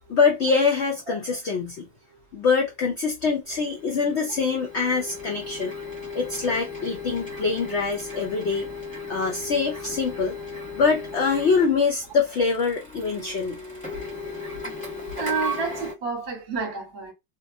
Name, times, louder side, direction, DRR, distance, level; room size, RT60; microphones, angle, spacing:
voice 1, 0.1-1.9 2.3-5.7 6.1-8.7 9.1-10.4 10.8-13.6, left 5 dB, 70° left, 0.6 m, -24 dB
Printer, 3.5-15.9, left 3 dB, 5° left, 1.0 m, -36 dB
voice 2, 15.1-17.1, right 4 dB, 35° right, 0.9 m, -29 dB
2.9 x 2.3 x 2.4 m
omnidirectional pair, 1.7 m